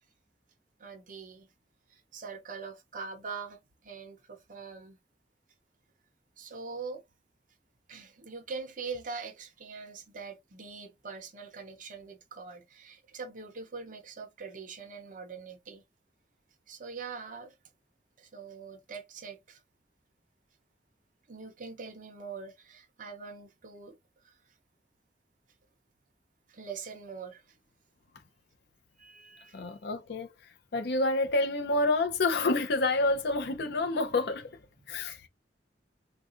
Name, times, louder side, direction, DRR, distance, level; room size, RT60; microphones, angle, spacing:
voice 1, 0.8-1.5 1.9-5.0 6.4-7.0 7.9-15.8 16.7-17.5 18.2-19.6 21.3-24.0 24.2-24.3 26.5-27.4 29.0-29.7 35.0-35.2, right 5 dB, 50° right, 0.7 m, -43 dB
voice 2, 29.5-30.3 30.7-34.5 34.9-35.3, left 2 dB, 65° left, 0.5 m, -28 dB
3.8 x 2.4 x 2.5 m
head